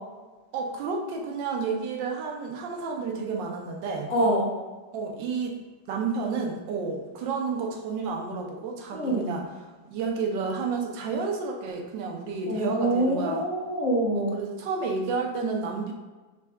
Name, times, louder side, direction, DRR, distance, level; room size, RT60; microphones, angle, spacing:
voice 1, 0.5-4.1 4.9-5.6 5.9-9.4 9.9-13.4 14.1-15.9, right 4 dB, 85° right, 2 dB, 1.4 m, -31 dB
voice 2, 4.1-4.5 8.9-9.3 12.5-14.4, right 1 dB, 45° left, -7 dB, 1.4 m, -25 dB
5.3 x 3.4 x 2.3 m, 1.2 s
omnidirectional pair, 1.9 m